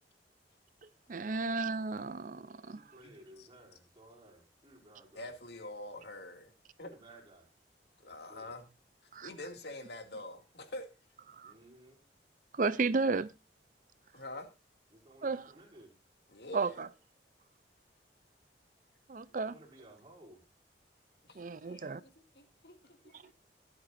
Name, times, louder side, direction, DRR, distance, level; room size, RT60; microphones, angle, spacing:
voice 1, 1.1-2.8 9.1-9.3 11.3-11.5 12.5-13.3 15.2-15.5 16.5-16.9 19.1-19.5 21.4-22.0 23.1-23.2, right 4 dB, 45° right, 0.5 m, -33 dB
voice 2, 2.7-5.4 6.8-7.5 8.0-8.6 11.4-12.0 14.9-16.0 19.4-20.4, right 1 dB, 25° right, 5.5 m, -57 dB
voice 3, 5.1-6.5 6.8-6.9 8.0-8.6 9.2-10.9 14.1-14.5 16.3-16.8 21.3-22.1 22.4-23.1, left 1 dB, 65° left, 2.4 m, -45 dB
22.5 x 8.1 x 2.6 m
head